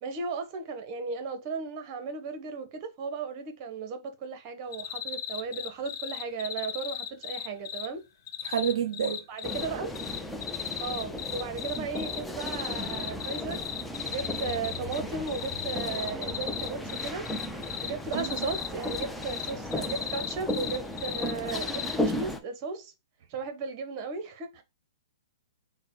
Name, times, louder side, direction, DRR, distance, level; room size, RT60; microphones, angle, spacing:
voice 1, 0.0-8.0 9.3-9.9 10.8-13.6 14.0-17.2 17.8-22.9 23.3-24.6, right 4 dB, 40° right, 1.1 m, -35 dB
sound 1, 4.7-7.9 8.3-9.6 9.9-15.0 15.3-22.0, left 9 dB, 55° left, 0.7 m, -36 dB
voice 2, 8.4-9.2 18.1-18.5, right 8 dB, 65° right, 0.6 m, -29 dB
sound 2, 9.4-22.4, left 1 dB, 5° left, 0.6 m, -35 dB
4.1 x 2.2 x 4.6 m
hypercardioid pair, 120°, 2 cm